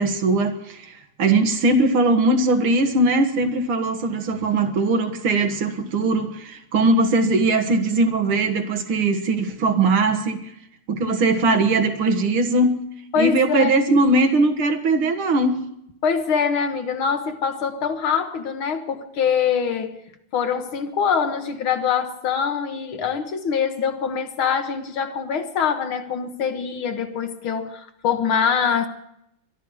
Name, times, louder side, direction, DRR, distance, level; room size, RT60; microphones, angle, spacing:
voice 1, 0.0-10.5 10.9-12.8 13.2-15.6, right 2 dB, 75° right, 2.4 m, -20 dB
voice 2, 13.1-13.8 16.0-20.0 20.3-28.9, left 7 dB, 75° left, 2.1 m, -24 dB
22.5 x 12.0 x 4.8 m
omnidirectional pair, 2.3 m